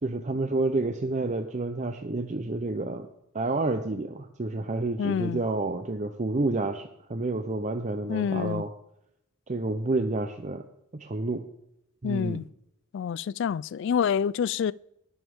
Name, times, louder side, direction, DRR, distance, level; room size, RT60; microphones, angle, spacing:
voice 1, 0.0-3.1 3.3-8.7 9.5-10.6 10.9-11.4 12.0-12.4, right 2 dB, 35° right, 0.6 m, -29 dB
voice 2, 5.0-5.4 8.1-8.6 12.0-12.5 12.9-14.7, left 7 dB, 60° left, 0.3 m, -27 dB
19.0 x 7.2 x 3.6 m
head